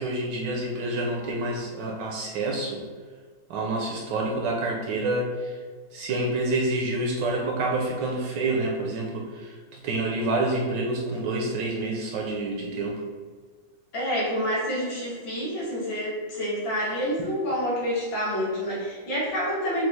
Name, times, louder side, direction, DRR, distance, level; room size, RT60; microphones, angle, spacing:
voice 1, 0.0-2.8 3.5-5.6 5.9-13.0, right 2 dB, 70° right, -1 dB, 1.1 m, -28 dB
voice 2, 13.9-19.8, equal, 70° left, -7 dB, 2.1 m, -28 dB
5.7 x 2.3 x 3.2 m, 1.5 s
omnidirectional pair, 2.2 m